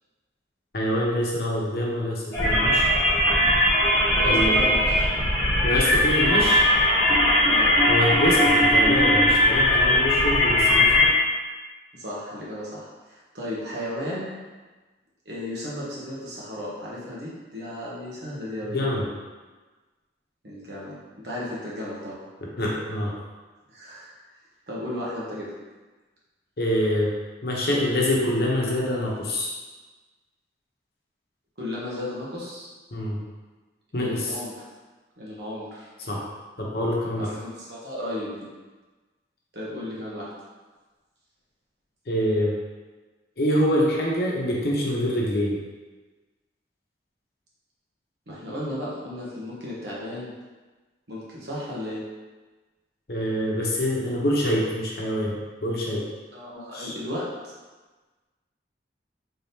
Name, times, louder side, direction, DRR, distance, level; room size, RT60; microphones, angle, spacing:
voice 1, 0.7-2.9 4.2-4.6 5.6-6.6 7.9-11.1 18.7-19.1 22.6-23.1 26.6-27.1 27.4-29.5 32.9-33.2 33.9-34.3 36.1-36.2 36.6-37.3 42.1-42.5 43.4-45.6 53.1-56.0 56.7-56.9, equal, 55° left, -3 dB, 0.8 m, -25 dB
sound 1, 2.3-11.1, left 1 dB, 15° left, 1.1 m, -19 dB
voice 2, 4.1-5.0 7.5-7.8 11.9-14.3 15.2-18.9 20.4-21.0 21.2-22.2 23.7-24.1 24.7-25.5 31.6-32.7 34.0-34.7 35.2-35.9 37.2-38.5 39.5-40.3 48.3-50.3 51.1-52.0 56.3-57.3, left 1 dB, 70° right, -6 dB, 1.1 m, -34 dB
3.8 x 3.5 x 2.8 m, 1.3 s
head